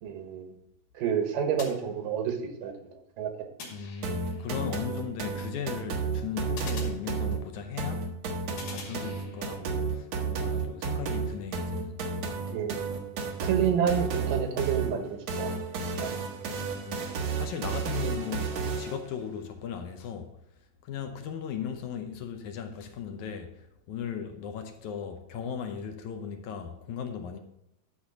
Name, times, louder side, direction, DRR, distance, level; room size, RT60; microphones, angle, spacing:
voice 1, 0.0-0.5 1.0-2.7 3.2-3.5 12.5-12.8 13.4-15.5 15.8-16.1, right 7 dB, 80° right, 2.9 m, -29 dB
sound 1, 1.6-2.5 3.6-4.5 6.6-7.7 8.6-9.6, left 4 dB, 90° left, 4.1 m, -45 dB
voice 2, 3.7-8.2 8.7-12.0 13.3-13.5 16.6-17.1 17.4-20.3 20.8-27.4, left 7 dB, 75° left, 2.1 m, -37 dB
sound 2, 4.0-19.0, right 5 dB, 60° right, 2.1 m, -32 dB
12.0 x 4.2 x 7.1 m
omnidirectional pair, 3.8 m